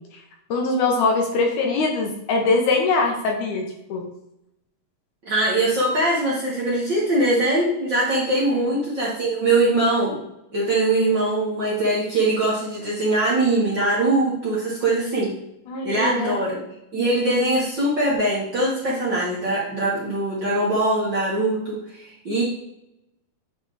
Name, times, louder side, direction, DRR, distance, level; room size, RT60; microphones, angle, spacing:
voice 1, 0.5-4.1 8.5-8.7 15.7-16.4, left 3 dB, 70° left, 2 dB, 2.1 m, -22 dB
voice 2, 5.2-10.2 10.5-15.3 15.8-16.6 16.9-22.4, right 2 dB, 50° right, -8 dB, 1.5 m, -22 dB
9.3 x 3.5 x 3.9 m, 0.86 s
omnidirectional pair, 4.0 m